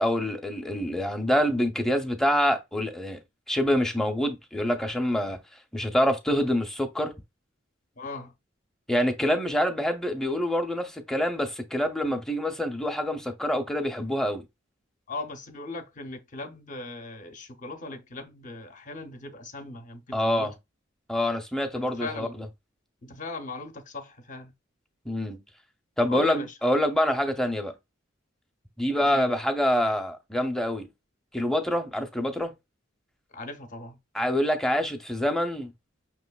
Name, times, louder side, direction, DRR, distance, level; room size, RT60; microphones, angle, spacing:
voice 1, 0.0-3.2 3.5-5.4 5.7-7.1 8.9-14.4 20.1-20.5 21.1-22.5 25.1-25.4 26.0-27.7 28.8-30.9 31.3-32.5 34.1-35.7, equal, 5° left, 0.6 m, -26 dB
voice 2, 8.0-8.3 15.1-20.5 21.7-22.3 23.0-24.5 26.1-26.5 28.9-29.3 33.3-34.0, left 2 dB, 40° left, 0.7 m, -39 dB
5.7 x 3.0 x 2.3 m
head